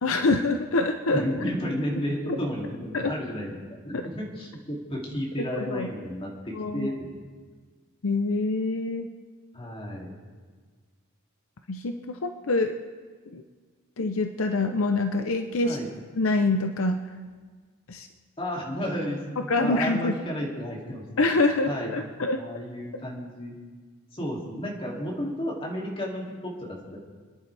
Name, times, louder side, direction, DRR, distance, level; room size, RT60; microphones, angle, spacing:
voice 1, 0.0-1.2 2.9-3.1 3.9-4.0 5.5-5.9 6.5-6.9 8.0-9.1 11.7-12.7 13.3-13.4 14.0-15.8 16.1-17.0 17.9-18.1 19.5-20.1 21.2-22.4, left 3 dB, 70° left, 6 dB, 0.7 m, -25 dB
voice 2, 1.1-3.6 3.8-7.3 9.5-10.1 15.6-15.9 18.4-21.3 21.7-21.9 22.4-23.6 24.1-27.0, equal, 25° left, -3 dB, 2.7 m, -32 dB
28.5 x 10.5 x 3.4 m, 1.5 s
head